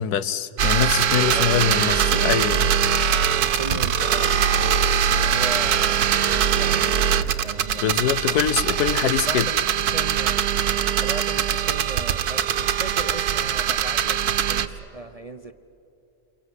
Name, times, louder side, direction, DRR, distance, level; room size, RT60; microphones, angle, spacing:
voice 1, 0.0-2.7 7.8-9.5, left 9 dB, 90° left, 1.4 m, -23 dB
sound 1, 0.6-14.7, right 8 dB, 80° right, 1.4 m, -22 dB
voice 2, 1.1-1.5 3.4-7.8 8.3-8.6 9.0-10.4 11.0-15.5, right 2 dB, 35° right, 0.6 m, -37 dB
29.0 x 23.5 x 8.0 m
omnidirectional pair, 1.6 m